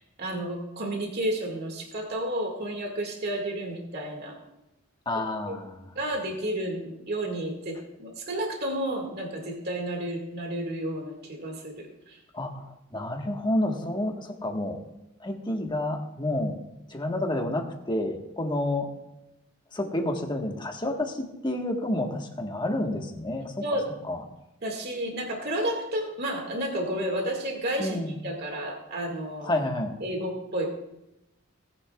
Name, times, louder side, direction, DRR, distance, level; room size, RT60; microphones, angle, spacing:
voice 1, 0.0-4.3 5.5-5.6 6.0-12.2 23.6-23.8 24.6-29.7 30.0-30.7, right 1 dB, 50° right, 1 dB, 2.0 m, -31 dB
voice 2, 5.0-5.9 12.3-14.8 15.2-16.6 16.9-18.9 19.7-23.5 24.0-24.2 27.8-28.2 29.4-30.0, left 1 dB, 25° left, 2 dB, 1.4 m, -29 dB
18.0 x 10.5 x 2.4 m, 0.92 s
head